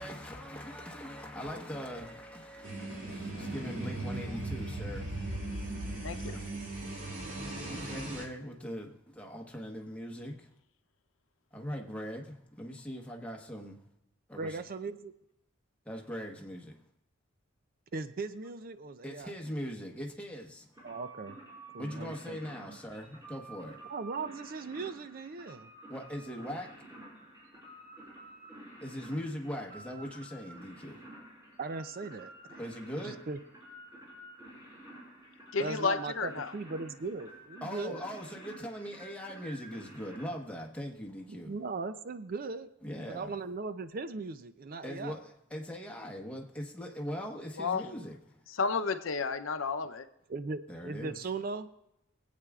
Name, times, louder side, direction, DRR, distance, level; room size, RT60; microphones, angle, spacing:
voice 1, 0.0-10.5 11.5-13.8 14.3-14.6 15.8-16.8 19.0-20.7 21.8-23.8 25.9-26.8 28.8-31.0 32.6-33.2 37.6-41.5 42.8-43.3 44.8-48.2 50.7-51.2, equal, 5° left, 1.1 m, -41 dB
sound 1, 2.6-8.3, right 2 dB, 85° right, 2.1 m, -38 dB
voice 2, 6.0-6.4 35.5-36.5 47.6-47.8 48.5-50.1, left 4 dB, 80° left, 0.7 m, -32 dB
voice 3, 14.4-15.1 17.9-19.3 20.8-21.4 21.7-22.4 22.6-22.8 23.9-25.7 31.6-32.6 33.0-33.4 35.6-38.0 41.3-42.7 43.1-45.2 50.3-51.7, right 4 dB, 45° right, 0.5 m, -38 dB
sound 2, 20.7-40.3, right 1 dB, 15° right, 5.1 m, -51 dB
23.5 x 8.4 x 2.4 m
head